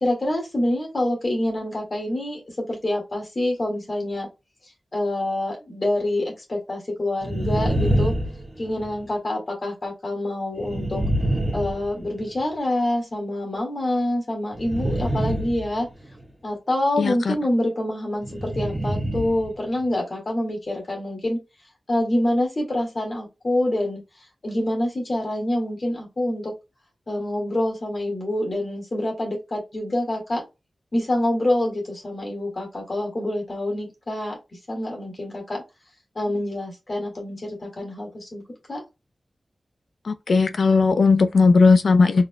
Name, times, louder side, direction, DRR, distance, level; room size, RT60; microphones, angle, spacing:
voice 1, 0.0-2.4 2.7-4.3 4.9-8.1 8.6-11.0 11.5-15.9 16.4-21.4 21.9-24.0 24.4-26.5 27.1-30.5 30.9-34.4 34.7-35.6 36.2-38.4 38.7-38.8, left 1 dB, 45° left, 1.8 m, -26 dB
sound 1, 7.2-9.1 10.6-12.4 14.5-16.2 18.2-19.5 19.8-19.9, right 1 dB, 20° right, 1.5 m, -26 dB
voice 2, 17.0-17.3 40.1-42.3, left 4 dB, 80° left, 0.4 m, -17 dB
4.1 x 3.8 x 2.2 m
wide cardioid pair, 95°, 0 cm